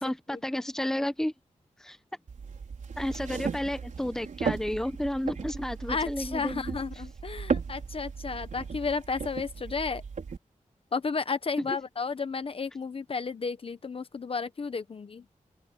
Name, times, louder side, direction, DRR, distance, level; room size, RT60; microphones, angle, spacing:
voice 1, 0.0-1.3 1.8-2.0 3.0-6.8, left 1 dB, 5° left, 0.9 m, -31 dB
voice 2, 0.8-1.1 5.9-10.0 10.9-15.3, left 4 dB, 45° left, 0.9 m, -33 dB
sound 1, 2.3-10.4, right 5 dB, 75° right, 4.7 m, -36 dB
open air
wide cardioid pair, 170°, 13 cm